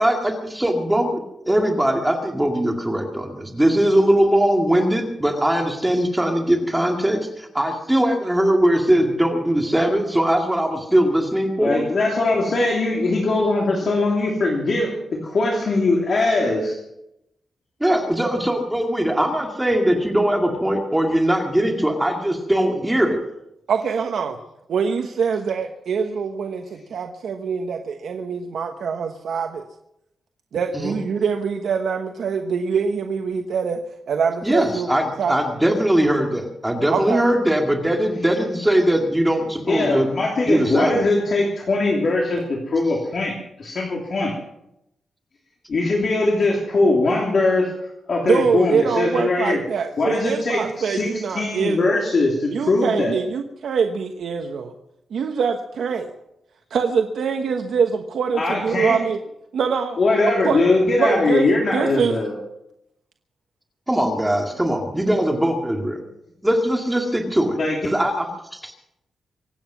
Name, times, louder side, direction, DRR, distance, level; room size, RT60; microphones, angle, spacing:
voice 1, 0.0-11.8 17.8-23.2 30.7-31.0 34.4-40.1 40.5-41.0 63.9-66.0 66.4-67.6 67.8-68.7, right 1 dB, 5° right, 2 dB, 2.1 m, -20 dB
voice 2, 11.6-16.8 39.7-44.3 45.7-47.7 48.1-49.6 50.0-53.2 58.3-59.0 60.0-62.3 67.6-67.8, left 2 dB, 45° left, -2 dB, 3.0 m, -21 dB
voice 3, 23.7-24.4 24.7-29.6 30.5-33.8 34.1-34.9 35.2-35.3 36.9-37.2 48.2-52.0 52.5-54.7 55.1-56.1 56.7-59.2 59.5-60.0 60.4-60.6 61.0-62.2, right 6 dB, 75° right, 4 dB, 1.2 m, -24 dB
24.5 x 9.2 x 6.0 m, 0.82 s
wide cardioid pair, 145°, 0 cm